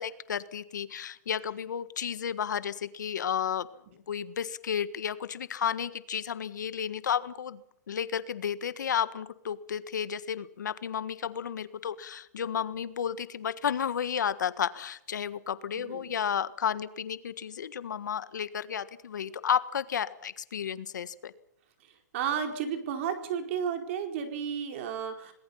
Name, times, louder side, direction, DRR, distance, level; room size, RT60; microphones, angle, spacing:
voice 1, 0.0-7.6 7.9-21.3, left 8 dB, 85° left, 15 dB, 1.6 m, -32 dB
voice 2, 15.7-16.1 22.1-25.3, right 7 dB, 45° right, 6 dB, 4.6 m, -32 dB
27.0 x 19.5 x 5.7 m, 0.74 s
hypercardioid pair, 160°, 10 cm